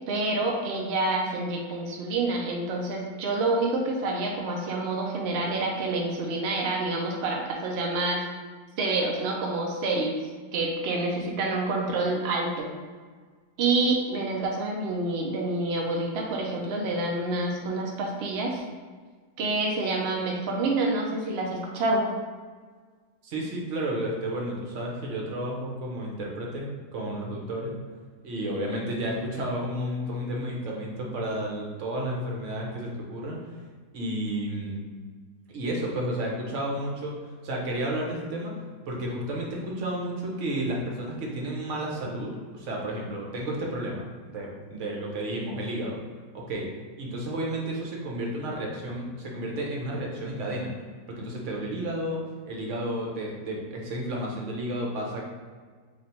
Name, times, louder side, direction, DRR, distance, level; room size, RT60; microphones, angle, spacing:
voice 1, 0.1-8.2 8.8-10.1 10.5-12.6 13.6-18.6 19.4-22.1, right 2 dB, 80° right, -1 dB, 0.5 m, -27 dB
voice 2, 23.2-27.8 28.2-33.5 33.9-34.8 35.5-37.2 37.4-38.5 38.9-46.0 46.3-46.7 47.0-50.7 51.1-52.2 52.5-55.2, right 1 dB, 55° right, -1 dB, 0.9 m, -32 dB
3.2 x 2.4 x 4.2 m, 1.5 s
omnidirectional pair, 1.7 m